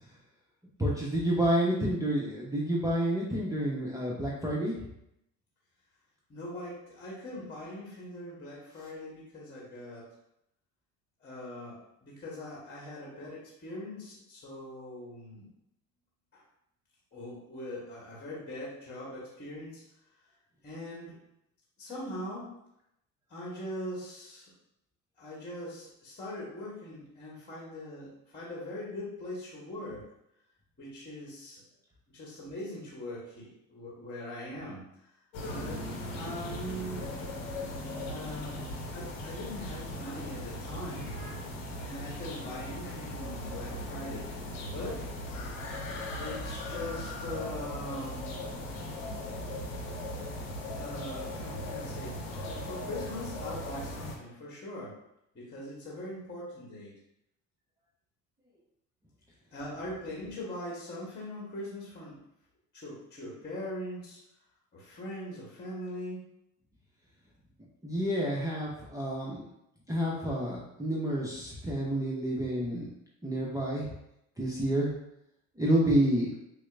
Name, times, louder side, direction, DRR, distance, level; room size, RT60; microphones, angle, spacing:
voice 1, 0.8-4.8 67.8-69.5 69.9-72.9 73.2-73.9 74.4-74.9 75.6-76.3, right 1 dB, 10° right, -5 dB, 0.8 m, -29 dB
voice 2, 6.3-10.1 11.2-15.5 16.3-16.4 17.1-19.8 20.6-21.1 21.8-22.5 23.3-24.5 25.2-30.0 30.8-31.6 32.1-34.9 35.5-37.1 38.0-38.6 38.9-41.1 41.8-44.3 44.7-45.0 46.2-48.4 50.7-54.9 55.3-56.9 59.5-62.2 62.7-64.2 64.7-66.3, left 1 dB, 25° left, -4 dB, 1.4 m, -41 dB
sound 1, 35.3-54.1, left 1 dB, 70° left, 0.9 m, -38 dB
6.1 x 2.2 x 2.4 m, 0.80 s
figure-of-eight pair, 60°, 40 cm